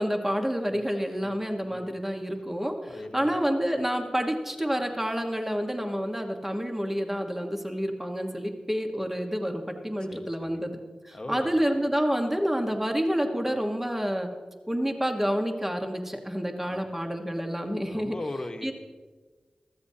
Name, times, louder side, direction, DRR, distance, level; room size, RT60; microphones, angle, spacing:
voice 1, 0.0-10.8 11.0-14.3 14.7-18.2 18.6-18.7, equal, 15° right, 4 dB, 1.4 m, -28 dB
voice 2, 1.6-2.0 2.9-3.3 10.1-10.6 11.1-11.6 16.7-16.8 17.9-18.7, left 2 dB, 40° left, 5 dB, 1.2 m, -39 dB
14.0 x 13.5 x 2.8 m, 1.4 s
cardioid pair, 40°, 2 cm